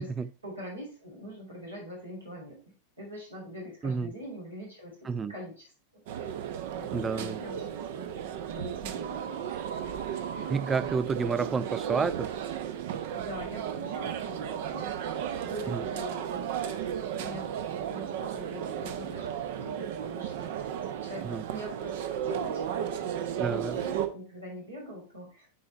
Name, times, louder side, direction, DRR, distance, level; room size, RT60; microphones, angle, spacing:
voice 1, 0.4-2.6 3.0-5.7 6.1-6.3 6.7-9.6 10.2-10.4 13.1-14.9 15.4-17.5 17.9-25.5, equal, 80° right, 3.8 m, -44 dB
voice 2, 3.8-4.1 5.1-5.3 6.9-7.4 10.5-12.3 15.7-15.8 21.2-21.4 23.4-23.8, right 5 dB, 15° right, 0.3 m, -30 dB
sound 1, 6.1-24.1, right 9 dB, 50° right, 0.7 m, -34 dB
8.5 x 4.4 x 4.3 m
figure-of-eight pair, 90°, 0 cm